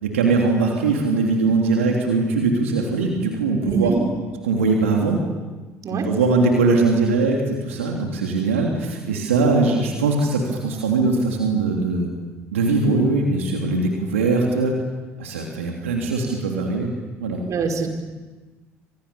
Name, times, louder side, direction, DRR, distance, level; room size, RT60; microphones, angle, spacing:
voice 1, 0.0-3.9 4.4-5.2 5.9-12.1 12.5-14.7 15.2-16.9 17.2-17.4, right 3 dB, 85° right, 0 dB, 3.2 m, -21 dB
voice 2, 17.5-17.9, right 5 dB, 50° right, 3 dB, 5.3 m, -23 dB
30.0 x 26.5 x 7.1 m, 1.3 s
hypercardioid pair, 55°, 7 cm